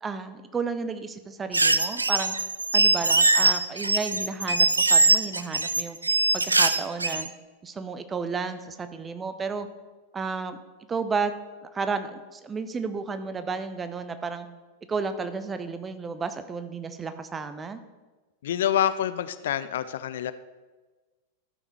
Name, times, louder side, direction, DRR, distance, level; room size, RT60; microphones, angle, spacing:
voice 1, 0.0-2.3 2.7-6.0 6.3-7.3 7.6-9.7 10.1-10.6 10.9-11.3 11.7-14.5 14.9-17.8, right 5 dB, 20° right, 10 dB, 0.7 m, -32 dB
sound 1, 1.5-7.3, right 3 dB, 80° right, 0.4 m, -22 dB
voice 2, 18.4-20.3, left 10 dB, 60° left, 14 dB, 0.4 m, -26 dB
13.0 x 5.6 x 4.6 m, 1.3 s
figure-of-eight pair, 90°, 0 cm